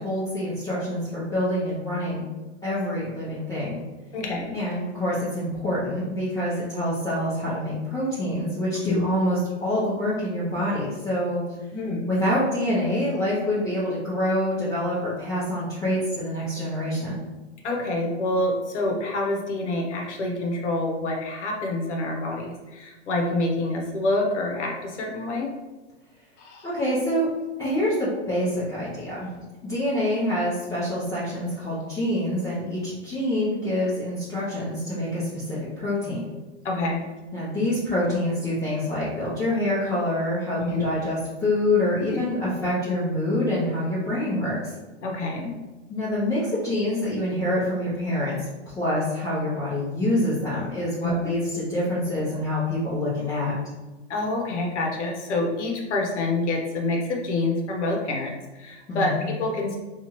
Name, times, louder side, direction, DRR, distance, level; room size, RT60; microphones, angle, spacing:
voice 1, 0.0-2.2 2.6-3.8 4.5-11.4 12.1-17.2 26.6-27.3 27.6-29.3 29.6-36.3 37.3-44.7 45.9-53.5 58.9-59.2, left 1 dB, 10° left, -12 dB, 0.6 m, -26 dB
voice 2, 4.1-4.5 8.7-9.1 11.7-12.1 17.6-25.5 26.4-26.7 36.6-37.0 40.6-40.9 42.0-42.2 45.0-45.5 51.0-51.1 54.1-59.8, left 2 dB, 80° left, 0 dB, 0.8 m, -27 dB
2.8 x 2.4 x 2.9 m, 1.2 s
hypercardioid pair, 150°, 34 cm